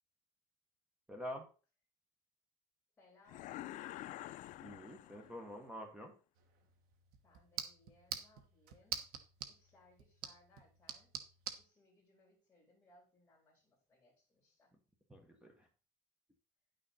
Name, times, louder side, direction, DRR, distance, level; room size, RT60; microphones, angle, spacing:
voice 1, 1.1-1.5 4.6-6.1 15.1-15.7, equal, 5° right, 3 dB, 1.2 m, -47 dB
voice 2, 3.0-4.2 7.2-9.1 9.5-11.2 11.6-14.7, left 2 dB, 10° left, -3 dB, 3.9 m, -68 dB
sound 1, 3.3-5.6, left 14 dB, 50° left, 0.5 m, -48 dB
sound 2, 6.4-11.6, right 9 dB, 65° right, 1.2 m, -47 dB
9.9 x 6.2 x 4.1 m, 0.34 s
cardioid pair, 170°, 16 cm